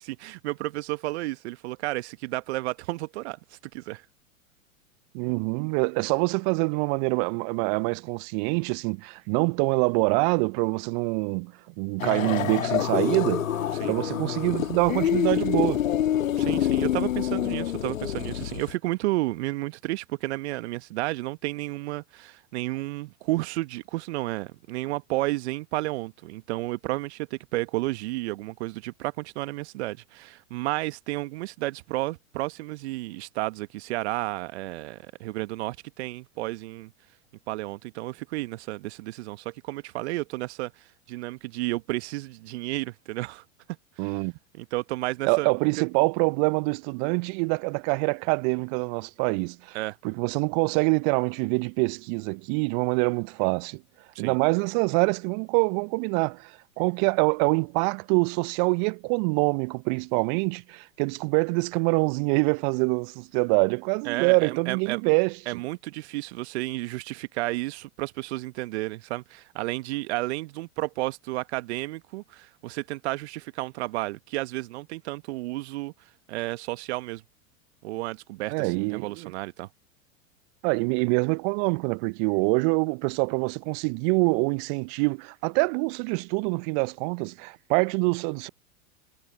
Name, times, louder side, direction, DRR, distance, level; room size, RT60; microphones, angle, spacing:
voice 1, 0.0-3.4 3.7-4.0 13.8-13.9 16.4-36.9 37.5-43.4 44.0-44.2 44.5-45.5 49.7-50.0 54.1-54.4 64.0-65.0 65.5-75.9 76.3-77.2 77.8-79.7, right 19 dB, 55° right, 1.5 m, -32 dB
voice 2, 5.1-13.5 13.8-15.8 44.0-44.3 45.2-49.8 50.0-53.8 54.2-65.6 78.5-79.3 80.6-88.5, right 36 dB, 35° right, 0.6 m, -25 dB
sound 1, 12.0-18.7, left 10 dB, 70° left, 1.6 m, -26 dB
figure-of-eight pair, 95°, 41 cm